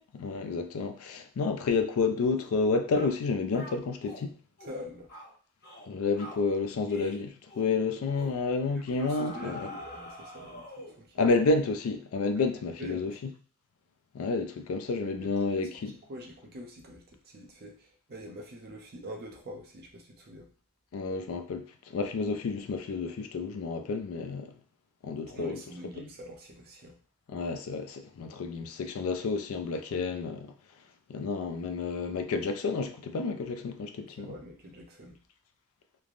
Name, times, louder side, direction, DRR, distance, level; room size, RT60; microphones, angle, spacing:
voice 1, 0.2-4.4 5.9-9.7 11.2-13.3 14.1-16.0 20.9-24.5 25.0-25.6 27.3-30.5 31.1-34.3, left 4 dB, 65° left, 0.4 m, -30 dB
sound 1, 2.3-2.6 2.9-3.2 3.5-4.3 4.6-4.8 5.1-5.3 5.6-5.9 6.2-6.4 6.9-7.2 7.5-7.7 8.1-8.4 9.0-11.0, left 1 dB, 45° left, 0.9 m, -45 dB
voice 2, 4.6-5.1 8.9-11.4 12.4-12.5 12.8-13.1 15.2-15.3 16.1-20.5 25.3-27.0 34.2-35.2, equal, 45° right, 0.6 m, -44 dB
3.2 x 2.0 x 2.4 m
head